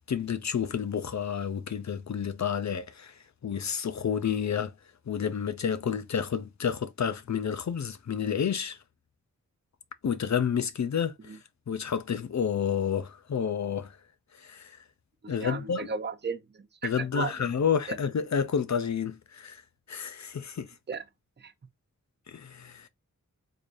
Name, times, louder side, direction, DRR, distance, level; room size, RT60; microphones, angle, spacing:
voice 1, 0.1-3.1 3.4-4.7 5.1-8.8 10.0-11.4 11.7-14.0 14.4-14.7 15.3-15.9 16.8-19.6 19.9-20.7 22.3-22.9, left 7 dB, 55° left, 0.5 m, -30 dB
voice 2, 15.2-16.4 16.8-17.3 17.9-18.0 20.9-21.0 21.4-21.5, right 5 dB, 30° right, 0.6 m, -35 dB
3.7 x 3.3 x 2.6 m
cardioid pair, 45°, 33 cm